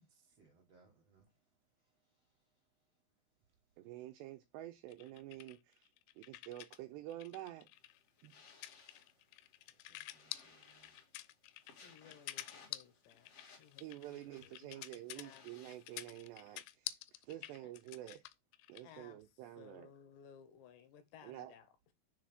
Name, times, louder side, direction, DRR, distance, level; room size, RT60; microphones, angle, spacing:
voice 1, 0.0-3.0 3.4-3.8 9.2-9.3 9.6-11.2 11.7-12.2 12.9-13.0 13.3-13.4, right 3 dB, 70° right, 1.5 m, -73 dB
voice 2, 3.8-5.9 6.2-7.7 8.2-8.3 13.8-18.2 18.7-19.9 21.2-21.5, right 14 dB, 85° right, 2.5 m, -49 dB
sound 1, 4.9-6.8 7.1-18.9, left 16 dB, 90° left, 3.2 m, -49 dB
sound 2, 7.7-16.6, left 4 dB, 50° left, 1.8 m, -64 dB
voice 3, 11.8-13.3 13.6-14.9 15.1-15.8 17.6-17.7 18.8-21.9, left 8 dB, 75° left, 3.0 m, -60 dB
6.7 x 4.0 x 6.3 m
omnidirectional pair, 5.6 m